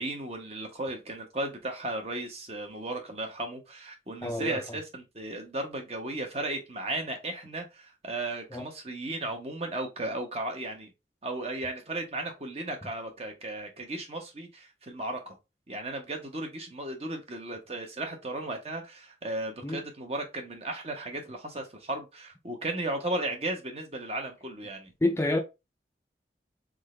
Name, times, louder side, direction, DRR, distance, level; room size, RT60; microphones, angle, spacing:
voice 1, 0.0-10.9 11.2-15.4 15.7-24.9, right 2 dB, 35° right, 1.0 m, -35 dB
voice 2, 4.2-4.6 8.5-8.6 19.6-19.8 25.0-25.4, left 2 dB, 15° left, 0.5 m, -28 dB
3.8 x 3.7 x 3.2 m
head